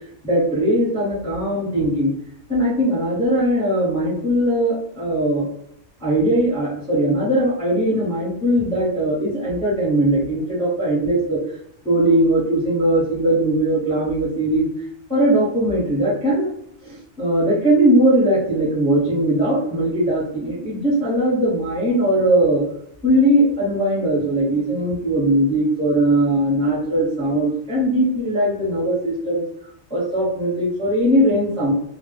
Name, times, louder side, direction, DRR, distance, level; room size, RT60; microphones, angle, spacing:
voice 1, 0.2-2.1 2.5-5.5 6.0-11.4 11.8-14.7 15.1-16.5 16.8-22.6 23.0-29.4 29.9-31.7, right 1 dB, 5° left, -7 dB, 0.7 m, -19 dB
2.2 x 2.0 x 3.2 m, 0.70 s
omnidirectional pair, 1.2 m